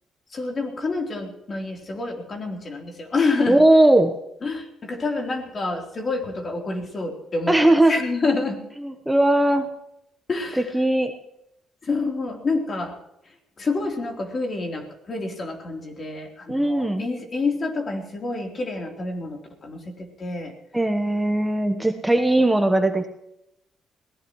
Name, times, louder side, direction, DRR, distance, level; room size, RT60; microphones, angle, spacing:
voice 1, 0.3-3.6 4.4-8.6 10.3-10.7 11.8-13.0 13.6-20.5, left 3 dB, 40° left, 2 dB, 3.7 m, -28 dB
voice 2, 3.5-4.2 7.5-7.9 8.8-9.7 10.7-11.1 16.5-17.0 20.7-23.1, right 1 dB, 10° right, 6 dB, 1.2 m, -18 dB
22.0 x 17.5 x 3.2 m, 0.83 s
cardioid pair, 90°, 0 cm